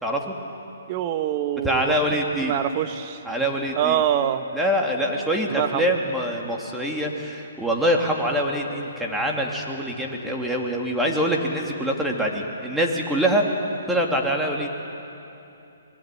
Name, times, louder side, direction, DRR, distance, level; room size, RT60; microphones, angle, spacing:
voice 1, 0.0-0.3 1.6-2.5 3.2-4.0 4.5-13.4 13.9-14.7, equal, 5° right, -1 dB, 3.0 m, -24 dB
voice 2, 0.9-1.9 2.4-3.2 3.7-4.4 5.5-5.9, right 10 dB, 35° right, 9 dB, 1.4 m, -25 dB
26.0 x 21.0 x 9.3 m, 2.9 s
hypercardioid pair, 140°, 0 cm